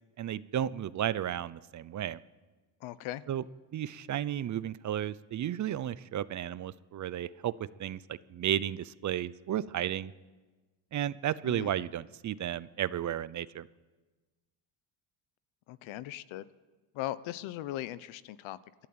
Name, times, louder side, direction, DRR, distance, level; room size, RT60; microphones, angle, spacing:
voice 1, 0.2-2.2 3.3-3.4 3.7-10.1 10.9-13.7, right 11 dB, 40° right, 17 dB, 0.6 m, -33 dB
voice 2, 2.8-3.2 11.4-11.7 15.7-16.5 16.9-18.9, left 14 dB, 80° left, 16 dB, 1.0 m, -39 dB
27.0 x 11.5 x 8.8 m, 1.3 s
cardioid pair, 130°, 46 cm